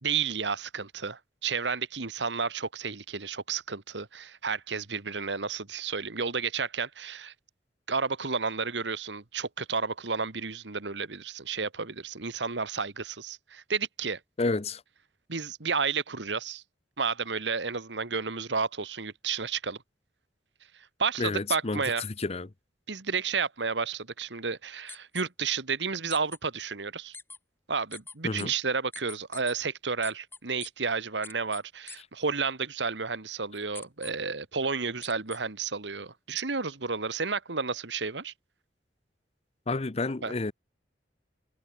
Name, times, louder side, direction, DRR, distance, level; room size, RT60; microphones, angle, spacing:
voice 1, 0.0-7.3 7.9-14.2 15.3-16.6 17.0-19.8 21.0-22.0 22.9-27.2 27.7-38.3 40.2-40.3, right 5 dB, 80° right, 1.7 m, -31 dB
voice 2, 14.4-14.8 21.2-22.5 28.2-28.5 39.7-40.5, left 3 dB, 35° left, 0.7 m, -30 dB
sound 1, 24.9-25.2 26.1-26.4 27.1-27.4 27.9-28.5 28.9-29.5 30.0-30.7 31.2-31.6 31.9-32.0 33.7-34.1 35.0-35.4 36.4-36.5, left 4 dB, 15° left, 1.8 m, -43 dB
head